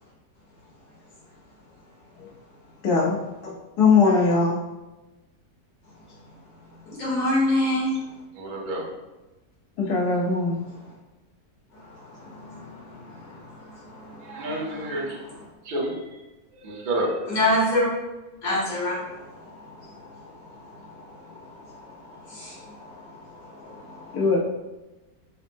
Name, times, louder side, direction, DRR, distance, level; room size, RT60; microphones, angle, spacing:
voice 1, 2.8-3.2 3.4-4.6 9.8-10.6 24.1-24.4, left 4 dB, 85° left, -3 dB, 1.3 m, -20 dB
voice 2, 7.0-7.9 12.3-13.4 14.0-14.1 17.3-17.9 18.4-19.0 22.3-22.5 23.6-24.0, left 1 dB, 65° left, -6 dB, 1.5 m, -25 dB
voice 3, 8.3-8.9 14.2-15.2 15.6-16.2 16.5-17.2, right 1 dB, 45° right, -3 dB, 0.7 m, -29 dB
4.0 x 2.0 x 3.4 m, 1.1 s
omnidirectional pair, 1.6 m